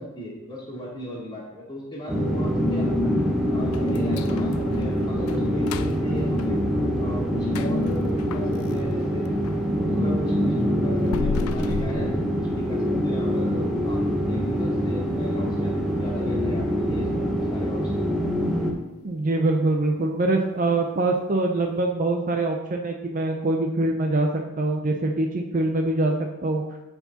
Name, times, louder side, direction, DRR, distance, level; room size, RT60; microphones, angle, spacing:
voice 1, 0.0-3.1 3.5-6.6 7.0-9.3 9.8-14.0 14.3-17.2 17.5-18.0, equal, 20° left, -7 dB, 2.6 m, -36 dB
sound 1, 2.1-18.7, equal, ahead, 0.9 m, -24 dB
sound 2, 3.7-9.7 10.0-12.9 13.2-13.3 13.8-13.9 14.5-14.8 15.1-15.2 15.8-15.9, left 6 dB, 75° left, 0.3 m, -36 dB
voice 2, 19.0-24.3 24.6-26.1 26.4-26.6, right 2 dB, 35° right, 2 dB, 0.5 m, -24 dB
13.5 x 4.6 x 2.8 m, 1.0 s
head